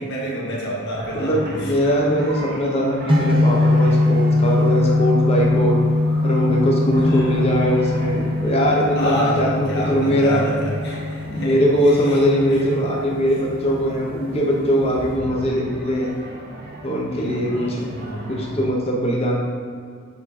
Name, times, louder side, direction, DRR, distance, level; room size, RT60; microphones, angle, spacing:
voice 1, 0.0-1.7 7.0-7.4 8.9-11.6 11.9-12.2 12.5-12.6 17.1-18.3, equal, 50° left, -4 dB, 1.5 m, -28 dB
sound 1, 0.9-18.7, right 1 dB, 45° right, 0.9 m, -38 dB
voice 2, 1.1-5.8 6.2-10.5 11.3-16.1 16.8-17.8 18.3-19.4, equal, 25° left, -2 dB, 0.9 m, -21 dB
sound 2, 3.1-15.2, left 2 dB, 25° right, 0.7 m, -22 dB
7.1 x 3.8 x 4.2 m, 2.1 s
head